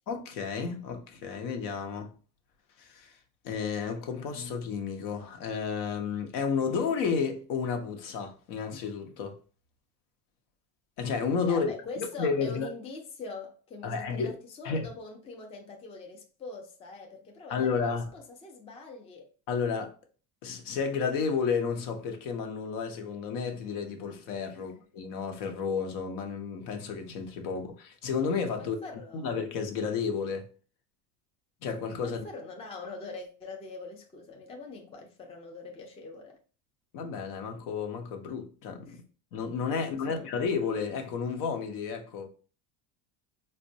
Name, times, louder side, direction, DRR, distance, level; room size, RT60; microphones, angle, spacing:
voice 1, 0.1-2.1 2.8-3.1 3.4-9.4 11.0-12.7 13.8-14.3 14.6-14.8 17.5-18.1 19.5-19.9 20.4-28.8 29.1-30.5 31.6-32.3 36.9-39.0 39.3-42.3, left 5 dB, 70° left, 0.8 m, -32 dB
voice 2, 11.5-19.3 24.5-24.7 28.6-29.3 32.0-36.4 38.8-39.0 40.1-40.4, left 3 dB, 15° left, 0.4 m, -43 dB
4.1 x 2.2 x 2.6 m
cardioid pair, 140°, 42 cm